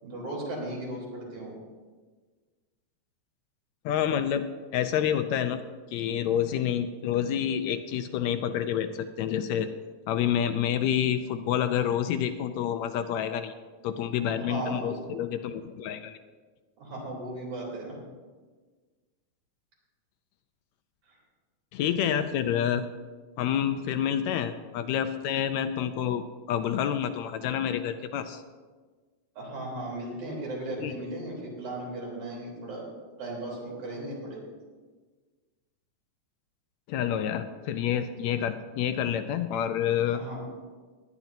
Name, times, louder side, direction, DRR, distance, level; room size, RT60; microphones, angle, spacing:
voice 1, 0.0-1.6 14.4-15.0 16.8-18.0 21.1-21.2 23.8-24.1 29.4-32.9 33.2-34.4 40.1-40.4, right 1 dB, 75° right, -4 dB, 4.9 m, -36 dB
voice 2, 3.8-4.5 4.7-5.6 5.9-9.7 10.1-13.5 13.8-16.2 21.7-22.8 23.4-26.2 26.5-28.4 30.8-30.9 36.9-40.2, left 9 dB, 80° left, 9 dB, 1.7 m, -28 dB
19.5 x 10.5 x 2.7 m, 1.4 s
omnidirectional pair, 3.4 m